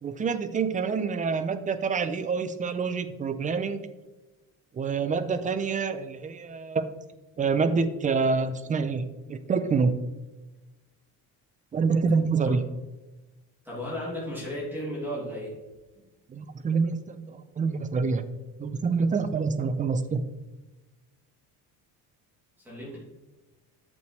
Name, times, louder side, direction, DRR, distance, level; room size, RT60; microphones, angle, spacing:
voice 1, 0.0-3.8 4.7-6.8 7.4-9.9 11.7-12.6 16.3-18.2 18.6-20.2, right 5 dB, 20° right, 11 dB, 0.4 m, -27 dB
voice 2, 13.6-15.5 22.6-23.0, equal, 5° right, -6 dB, 2.5 m, -34 dB
8.4 x 6.6 x 3.1 m, 1.1 s
cardioid pair, 155°, 38 cm